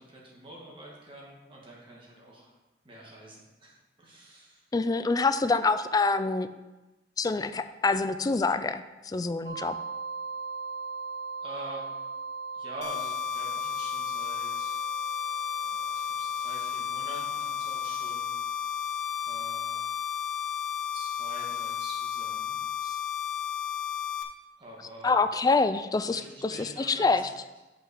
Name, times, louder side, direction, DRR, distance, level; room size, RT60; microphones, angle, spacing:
voice 1, 0.0-2.5 2.8-4.6 11.4-11.9 12.5-14.8 15.6-18.3 19.2-19.8 20.9-22.6 24.6-25.2 26.0-27.2, right 1 dB, 30° right, -3 dB, 2.0 m, -46 dB
voice 2, 4.7-6.5 7.2-9.7 22.9-23.0 25.0-27.2, left 3 dB, 20° left, 11 dB, 0.3 m, -26 dB
sound 1, 9.4-22.3, right 4 dB, 60° right, 1.2 m, -40 dB
sound 2, 12.8-24.2, left 10 dB, 85° left, 0.9 m, -33 dB
5.9 x 5.5 x 6.4 m, 1.1 s
head